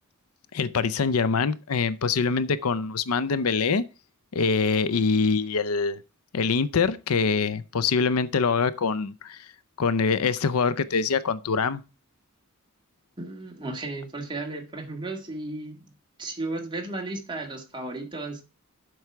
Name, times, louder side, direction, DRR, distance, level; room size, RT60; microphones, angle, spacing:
voice 1, 0.5-3.9 4.3-6.0 6.3-9.4 9.8-11.8, left 5 dB, 85° left, 0.6 m, -24 dB
voice 2, 13.2-15.9 16.2-18.4, right 2 dB, 20° right, 1.8 m, -34 dB
7.8 x 4.8 x 5.7 m
head